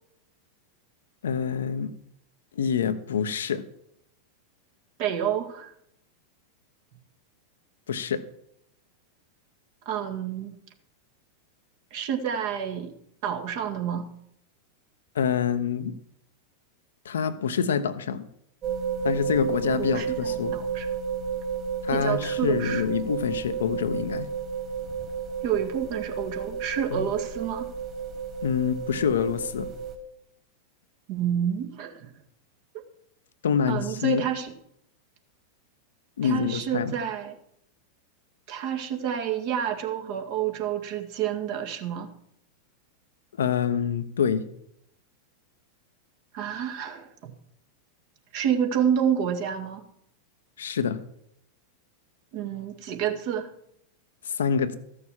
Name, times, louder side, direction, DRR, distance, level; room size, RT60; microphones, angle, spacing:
voice 1, 1.2-1.9 2.5-3.6 7.9-8.2 15.1-16.0 17.0-18.3 19.0-20.5 21.8-24.3 26.9-27.1 28.4-29.7 33.4-34.2 36.2-36.9 43.4-44.5 50.6-51.0 54.2-54.8, left 7 dB, 65° left, 11 dB, 0.8 m, -26 dB
voice 2, 5.0-5.7 9.9-10.6 11.9-12.9 13.2-14.1 19.8-20.9 21.9-23.0 25.4-27.7 31.1-32.1 33.7-34.5 36.2-37.4 38.5-42.1 46.3-47.3 48.3-49.8 52.3-53.5, right 9 dB, 45° right, 4 dB, 1.9 m, -29 dB
sound 1, 18.6-29.9, right 6 dB, 30° right, 3.2 m, -32 dB
14.0 x 6.6 x 7.3 m, 0.73 s
figure-of-eight pair, 90°, 0 cm